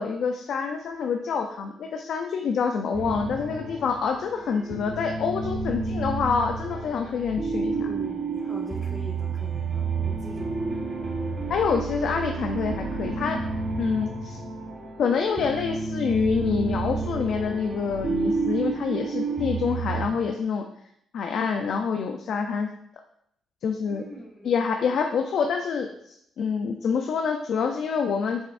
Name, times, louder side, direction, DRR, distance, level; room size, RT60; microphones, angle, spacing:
voice 1, 0.0-7.9 11.5-13.4 13.8-14.4 15.0-20.6 21.1-22.7 23.6-24.0 24.4-28.4, left 6 dB, 65° left, 4 dB, 0.6 m, -27 dB
sound 1, 2.9-20.1, right 4 dB, 40° right, 1.3 m, -30 dB
voice 2, 7.7-10.7 23.8-24.7, equal, 15° left, -7 dB, 1.7 m, -42 dB
8.0 x 6.2 x 2.6 m, 0.73 s
cardioid pair, 90°, 0 cm